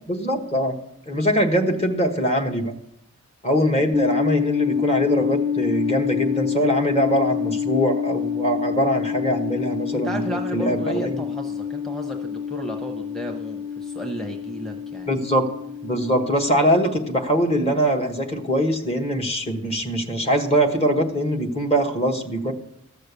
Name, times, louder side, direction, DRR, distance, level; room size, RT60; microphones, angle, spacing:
voice 1, 0.1-0.7 1.1-2.7 3.4-11.3 15.1-15.5 15.8-22.5, equal, 30° left, 5 dB, 1.2 m, -22 dB
sound 1, 3.9-17.4, left 7 dB, 15° right, 0.5 m, -27 dB
voice 2, 9.9-15.2, right 1 dB, ahead, 2 dB, 0.9 m, -33 dB
14.0 x 6.7 x 6.8 m, 0.77 s
head